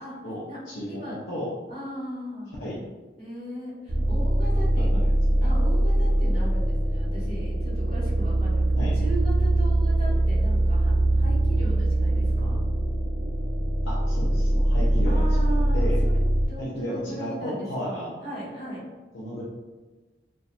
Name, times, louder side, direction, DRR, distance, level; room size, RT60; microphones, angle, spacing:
voice 1, 0.2-1.5 2.6-2.8 4.5-5.1 5.4-5.5 8.7-9.0 13.8-15.2 15.7-16.0 16.6-18.1 19.1-19.4, equal, 85° left, -6 dB, 0.5 m, -33 dB
voice 2, 0.9-1.2 1.7-2.6 3.2-5.1 5.4-12.6 15.0-16.2 16.4-18.8, right 1 dB, 35° left, -11 dB, 1.4 m, -37 dB
sound 1, 3.9-16.5, right 1 dB, 35° right, 0.4 m, -22 dB
2.7 x 2.1 x 2.4 m, 1.2 s
head